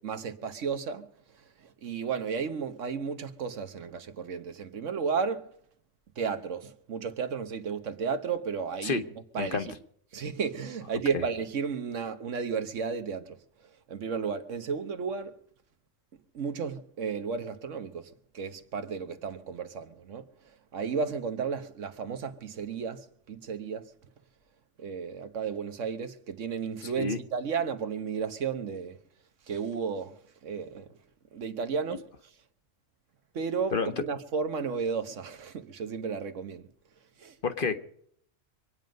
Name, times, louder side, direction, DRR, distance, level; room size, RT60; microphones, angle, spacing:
voice 1, 0.0-1.1 1.8-5.5 6.2-9.0 9.3-9.7 10.1-13.4 13.9-15.3 16.3-20.2 20.7-23.8 24.8-29.0 29.5-30.2 30.4-30.9 31.3-32.1 33.3-36.7 37.2-37.3, right 6 dB, 85° right, 1.4 m, -33 dB
voice 2, 26.8-27.2 33.7-33.9 37.4-37.8, left 4 dB, 50° left, 1.1 m, -29 dB
25.5 x 9.3 x 5.2 m
omnidirectional pair, 1.2 m